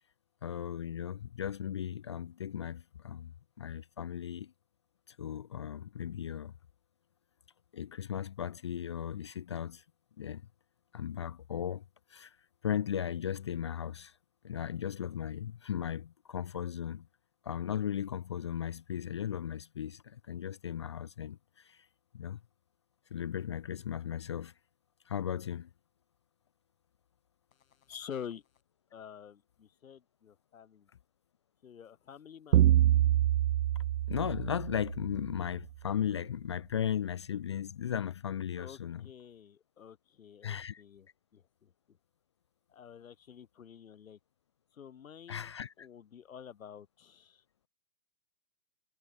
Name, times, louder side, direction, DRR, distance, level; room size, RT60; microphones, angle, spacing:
voice 1, 0.4-3.3 3.6-4.5 5.1-6.5 7.7-9.8 10.2-10.4 10.9-11.8 12.1-12.3 12.6-14.1 14.4-17.0 17.4-21.4 21.6-21.8 22.1-22.4 23.1-24.5 25.1-25.7 34.1-39.1 40.4-40.8 45.3-45.9, left 9 dB, 25° left, 0.3 m, -36 dB
voice 2, 27.5-28.4 28.9-30.9 31.6-32.6 38.6-42.0 42.7-44.2 44.7-47.4, left 8 dB, 75° left, 4.8 m, -49 dB
sound 1, 32.5-35.3, right 12 dB, 60° right, 0.9 m, -26 dB
hypercardioid pair, 135°, 41 cm